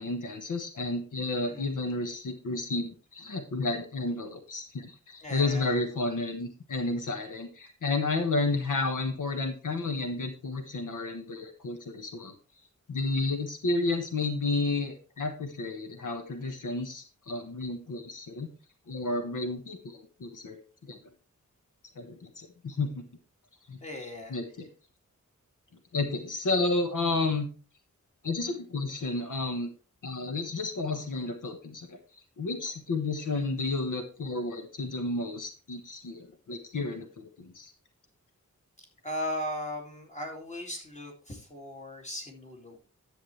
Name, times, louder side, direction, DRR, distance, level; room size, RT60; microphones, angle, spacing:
voice 1, 0.0-12.4 12.9-18.5 18.9-21.0 21.9-23.1 23.7-23.8 24.3-24.7 25.9-27.5 28.2-29.7 30.0-32.0 32.4-37.7, left 3 dB, 75° left, 5 dB, 1.3 m, -31 dB
voice 2, 5.2-5.7 23.8-24.4 39.0-42.8, left 1 dB, 20° left, 1 dB, 2.4 m, -37 dB
10.5 x 7.5 x 3.2 m, 0.36 s
wide cardioid pair, 115°, 31 cm